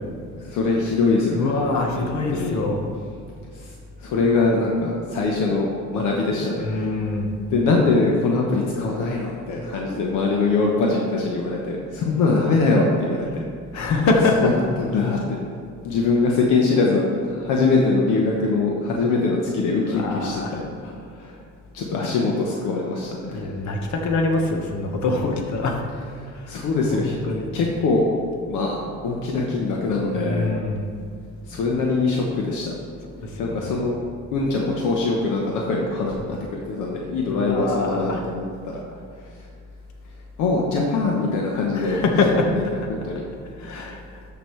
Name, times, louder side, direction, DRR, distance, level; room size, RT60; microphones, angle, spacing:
voice 1, 0.5-1.5 1.9-2.6 4.0-6.9 7.5-13.4 14.4-14.5 14.8-15.2 15.8-21.3 21.7-23.5 26.5-27.2 27.5-28.0 28.5-30.5 31.5-32.7 33.4-34.0 34.3-36.1 36.5-38.4 40.4-42.0 42.9-43.2, left 3 dB, 90° left, -1 dB, 1.0 m, -22 dB
voice 2, 1.3-2.8 6.6-7.4 13.7-14.5 19.9-20.6 23.3-25.8 26.3-26.5 26.9-27.5 30.1-30.9 33.2-33.7 37.3-38.2 41.7-42.7 43.6-44.2, left 3 dB, 70° left, 2 dB, 1.3 m, -24 dB
12.5 x 5.2 x 3.2 m, 2.3 s
cardioid pair, 90°, 30 cm